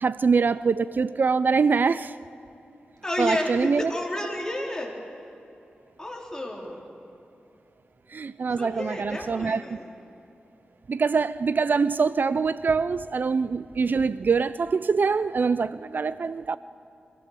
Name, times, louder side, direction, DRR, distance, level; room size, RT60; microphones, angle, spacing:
voice 1, 0.0-2.2 3.2-3.9 8.1-9.8 10.9-16.6, right 5 dB, 55° right, 0.4 m, -24 dB
voice 2, 3.0-4.9 6.0-6.8 8.6-9.9, left 1 dB, 15° left, 3.9 m, -31 dB
23.5 x 16.5 x 6.7 m
wide cardioid pair, 85°, 4 cm